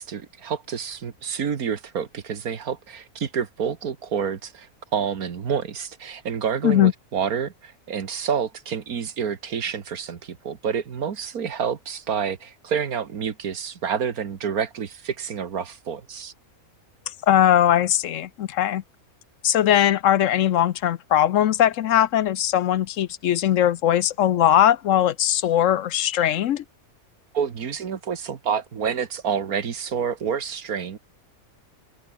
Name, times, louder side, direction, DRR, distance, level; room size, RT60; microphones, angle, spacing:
voice 1, 0.0-16.3 27.3-31.0, right 7 dB, 90° right, 2.0 m, -28 dB
voice 2, 17.2-18.8 19.4-26.6, left 11 dB, 65° left, 1.0 m, -20 dB
open air
omnidirectional pair, 1.5 m